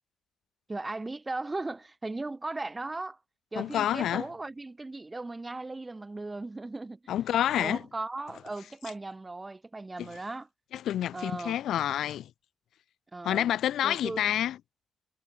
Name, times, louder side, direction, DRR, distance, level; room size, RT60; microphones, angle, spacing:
voice 1, 0.7-3.2 3.5-7.0 7.5-10.5 11.1-11.6 13.1-13.5 13.8-14.3, right 2 dB, 20° right, 2.7 m, -37 dB
voice 2, 3.6-4.3 7.1-7.8 10.0-10.1 10.7-12.3 13.2-14.6, left 11 dB, 80° left, 0.9 m, -28 dB
cardioid pair, 110°, 0 cm